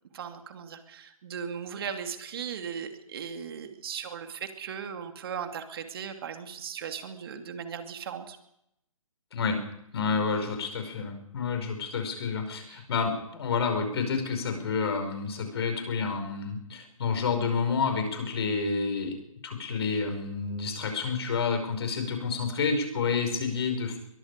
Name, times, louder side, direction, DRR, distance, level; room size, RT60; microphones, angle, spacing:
voice 1, 0.1-8.4 12.7-12.8, right 7 dB, 40° right, 7 dB, 2.6 m, -37 dB
voice 2, 9.9-19.1 19.4-24.0, left 5 dB, 45° left, 6 dB, 5.6 m, -29 dB
23.0 x 22.0 x 5.1 m, 0.80 s
figure-of-eight pair, 135°, 18 cm